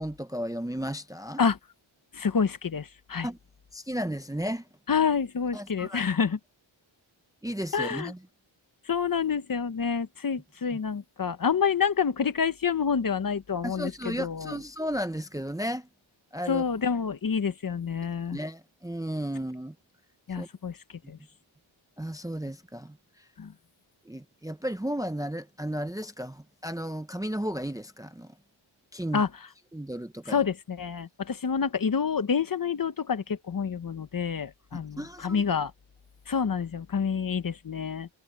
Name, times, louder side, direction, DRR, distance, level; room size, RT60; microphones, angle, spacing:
voice 1, 0.0-1.4 3.2-3.4 3.7-4.7 5.5-6.0 7.4-8.2 13.6-15.9 16.3-16.6 18.3-19.7 20.4-20.5 22.0-23.0 24.1-28.4 28.9-29.2 29.7-30.4 34.7-35.4, equal, 5° right, 0.7 m, -34 dB
voice 2, 2.1-3.3 4.9-6.4 7.7-8.1 8.9-14.6 16.5-18.4 20.3-20.8 21.1-21.2 23.4-23.5 29.1-29.3 30.3-35.7 36.3-38.1, left 6 dB, 45° left, 1.0 m, -28 dB
wide cardioid pair, 160°, 48 cm